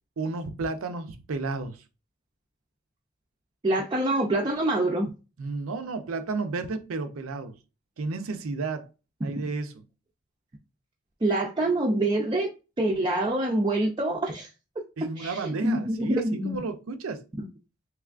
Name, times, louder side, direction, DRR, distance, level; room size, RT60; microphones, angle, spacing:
voice 1, 0.2-1.8 5.4-7.5 8.0-8.9 9.2-9.8 15.0-17.2, right 3 dB, 80° right, 0.5 m, -32 dB
voice 2, 3.6-5.1 9.4-9.5 11.2-12.5 12.8-14.5 15.2-16.6, right 1 dB, 20° right, 0.4 m, -26 dB
3.4 x 3.1 x 2.4 m
head